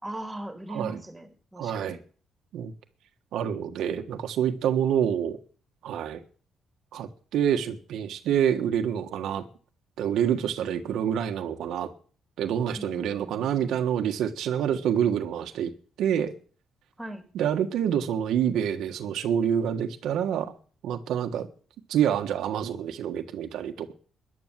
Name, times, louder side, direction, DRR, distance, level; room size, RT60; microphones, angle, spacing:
voice 1, 0.0-2.0 12.8-13.7 17.0-17.2, right 1 dB, 5° right, 3.8 m, -39 dB
voice 2, 0.7-1.0 1.6-2.0 2.5-2.7 3.3-5.4 5.8-6.2 6.9-9.4 10.0-11.9 12.4-15.7 16.0-16.3 17.3-20.5 20.8-21.5 21.9-23.9, right 9 dB, 80° right, 1.5 m, -27 dB
14.0 x 11.0 x 7.5 m
cardioid pair, 90°, 0 cm